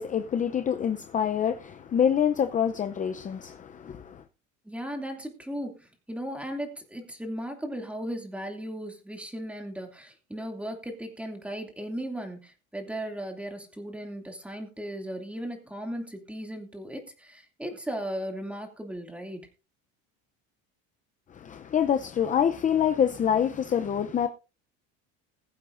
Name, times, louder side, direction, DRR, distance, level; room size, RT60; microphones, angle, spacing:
voice 1, 0.0-4.2 21.3-24.3, left 8 dB, 25° left, 0.7 m, -26 dB
voice 2, 4.6-19.5, equal, 5° right, 2.6 m, -36 dB
21.0 x 8.4 x 2.6 m
cardioid pair, 140°, 32 cm